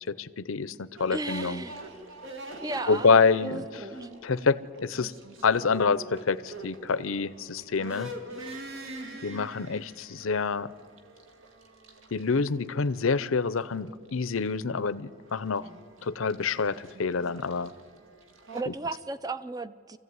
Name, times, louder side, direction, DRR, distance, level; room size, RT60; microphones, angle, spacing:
voice 1, 0.1-1.6 2.9-3.7 4.2-5.1 5.4-8.1 9.2-10.7 12.1-15.7 16.0-17.7 18.7-18.8, left 5 dB, 75° left, 17 dB, 0.7 m, -27 dB
sound 1, 1.0-18.6, right 1 dB, 70° right, 2.1 m, -45 dB
voice 2, 1.1-1.8 2.6-3.1 3.4-4.1 18.5-20.0, right 2 dB, 15° right, 14 dB, 0.5 m, -35 dB
24.5 x 15.5 x 9.5 m, 2.6 s
head